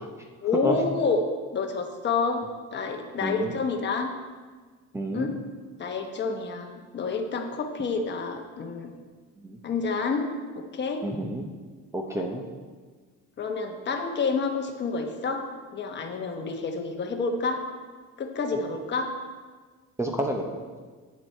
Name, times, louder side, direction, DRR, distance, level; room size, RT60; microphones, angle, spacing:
voice 1, 0.4-1.2 1.5-2.4 2.7-4.1 5.1-5.3 5.8-8.9 9.6-10.3 10.6-11.0 13.4-15.4 15.7-17.6 18.2-19.1, left 4 dB, 35° left, 4 dB, 1.1 m, -28 dB
voice 2, 3.2-3.5 4.9-5.3 9.4-9.6 11.0-11.5 11.9-12.4 20.0-20.6, equal, 10° right, 2 dB, 0.8 m, -29 dB
9.5 x 9.4 x 4.5 m, 1.5 s
cardioid pair, 145°, 30 cm